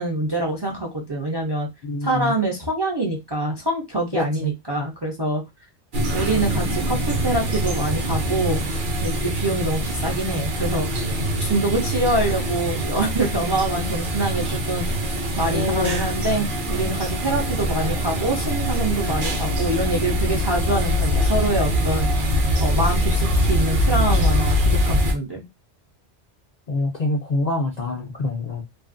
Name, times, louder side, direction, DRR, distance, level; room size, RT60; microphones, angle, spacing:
voice 1, 0.0-1.7 2.0-5.4 6.1-8.6 9.0-10.9 11.4-14.9 15.1-22.1 22.6-25.4, right 2 dB, 35° right, 0.4 m, -25 dB
voice 2, 1.8-2.3 4.1-4.5 15.5-16.0 26.7-28.6, left 2 dB, 55° left, 0.5 m, -25 dB
sound 1, 5.9-25.1, equal, 55° right, 0.8 m, -23 dB
2.7 x 2.4 x 2.5 m
omnidirectional pair, 1.1 m